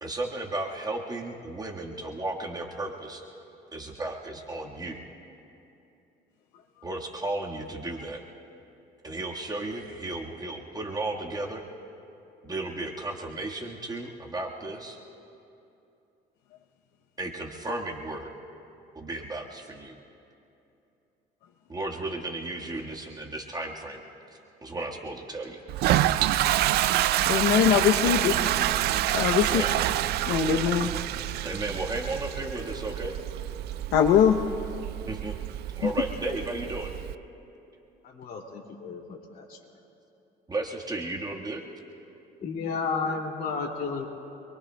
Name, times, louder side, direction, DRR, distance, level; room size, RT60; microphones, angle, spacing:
voice 1, 0.0-3.2 3.7-5.0 6.8-8.2 9.0-11.6 12.4-15.0 17.2-18.3 18.9-20.0 21.7-24.0 24.6-25.6 29.4-29.7 31.4-33.2 35.1-35.3 35.8-36.9 40.5-41.6, right 2 dB, 25° right, 0 dB, 1.5 m, -34 dB
Toilet flush, 25.7-37.1, right 13 dB, 70° right, 0.4 m, -27 dB
voice 2, 27.3-28.4 29.1-29.6 30.3-30.9 33.9-34.4 35.8-35.9, left 9 dB, 85° left, 3 dB, 0.7 m, -22 dB
voice 3, 38.0-39.6 42.4-44.1, left 4 dB, 60° left, 0 dB, 2.4 m, -32 dB
26.0 x 23.0 x 2.2 m, 2.8 s
cardioid pair, 110°, 17 cm